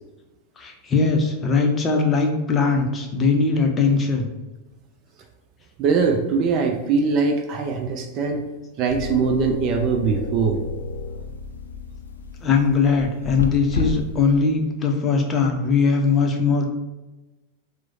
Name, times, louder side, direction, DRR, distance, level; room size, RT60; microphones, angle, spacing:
voice 1, 0.6-4.3 12.4-16.7, left 4 dB, 20° left, 1 dB, 0.6 m, -20 dB
voice 2, 5.8-8.4 8.8-10.6, right 5 dB, 35° right, 4 dB, 0.4 m, -21 dB
sound 1, 8.9-14.4, left 4 dB, 70° left, 0.4 m, -31 dB
4.5 x 2.1 x 4.1 m, 1.1 s
figure-of-eight pair, 90°, 0 cm